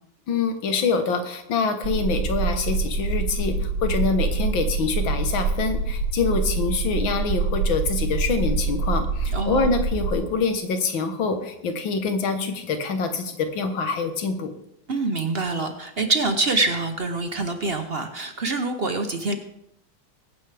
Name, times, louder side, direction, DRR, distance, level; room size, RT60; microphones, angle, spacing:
voice 1, 0.3-14.5, left 4 dB, 80° left, 7 dB, 2.0 m, -25 dB
sound 1, 1.8-10.1, right 4 dB, 75° right, 2.1 m, -25 dB
voice 2, 9.3-9.7 14.9-19.4, right 3 dB, 45° right, 7 dB, 0.8 m, -25 dB
22.0 x 9.2 x 3.4 m, 0.79 s
omnidirectional pair, 2.1 m